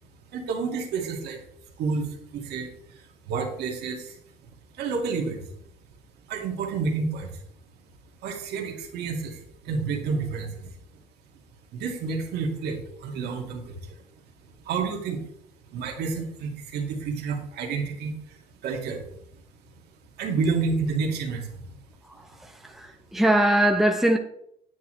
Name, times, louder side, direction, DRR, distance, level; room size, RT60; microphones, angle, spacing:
voice 1, 0.3-1.4 1.8-4.2 4.7-5.5 6.3-7.4 8.2-11.0 11.7-14.0 14.6-15.2 15.7-19.1 20.2-21.8, right 4 dB, 75° right, 2.2 m, -30 dB
voice 2, 22.1-24.2, right 1 dB, ahead, 1.0 m, -22 dB
9.7 x 9.4 x 3.3 m
cardioid pair, 100°, 17 cm